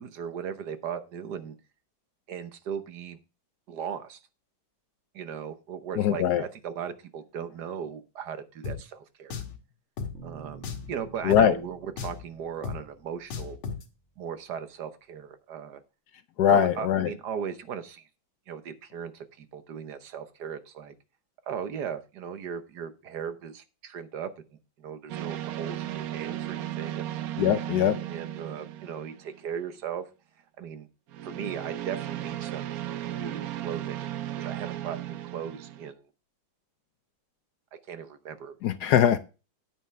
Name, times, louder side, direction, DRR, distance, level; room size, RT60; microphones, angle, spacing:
voice 1, 0.0-1.5 2.3-3.2 3.7-4.2 5.1-9.4 10.2-13.6 14.2-15.8 16.5-18.1 18.5-20.9 21.5-24.4 24.8-27.2 28.1-30.1 30.6-30.9 31.2-32.7 33.1-34.1 34.4-36.1 37.7-38.5, right 7 dB, 60° right, 1.4 m, -37 dB
voice 2, 6.0-6.4 11.2-11.5 16.4-17.1 27.4-28.0 38.6-39.2, left 10 dB, 70° left, 1.0 m, -21 dB
Drum, 8.6-8.8 9.3-9.6 10.0-10.1 10.6-10.9 11.3-11.5 12.0-12.2 12.6-12.8 13.3-13.8, left 6 dB, 85° left, 2.1 m, -34 dB
sound 1, 10.1-14.2, right 5 dB, 5° left, 2.6 m, -50 dB
sound 2, 25.1-29.6 31.1-35.9, right 12 dB, 75° right, 0.8 m, -35 dB
9.2 x 9.1 x 3.3 m
omnidirectional pair, 2.2 m